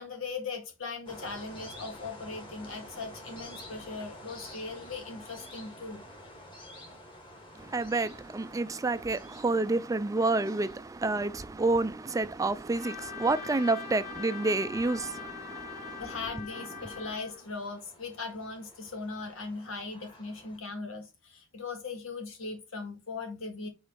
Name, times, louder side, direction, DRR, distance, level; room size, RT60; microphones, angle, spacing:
voice 1, 0.0-6.0 16.0-23.7, left 4 dB, 90° left, 2.0 m, -39 dB
sound 1, 1.1-20.6, left 1 dB, 25° left, 1.9 m, -51 dB
voice 2, 7.6-16.2 16.6-16.9, right 2 dB, 15° right, 0.4 m, -29 dB
Trumpet, 12.8-17.4, left 6 dB, 45° left, 2.0 m, -43 dB
5.2 x 3.9 x 5.5 m
head